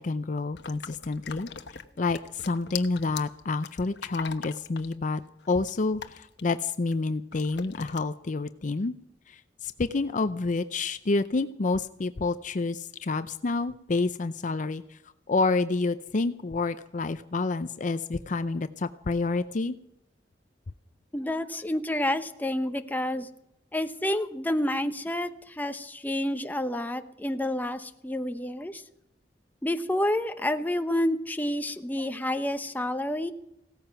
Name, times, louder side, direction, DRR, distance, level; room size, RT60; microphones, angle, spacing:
voice 1, 0.0-5.2 5.5-8.9 9.3-15.0 15.3-19.8, left 3 dB, 45° left, 12 dB, 0.5 m, -29 dB
sound 1, 0.6-7.0 7.3-8.0, left 7 dB, 75° left, 1.0 m, -41 dB
voice 2, 21.1-23.3 23.7-28.8 29.6-33.3, left 1 dB, 10° left, 7 dB, 0.8 m, -29 dB
17.0 x 14.0 x 5.8 m, 0.81 s
head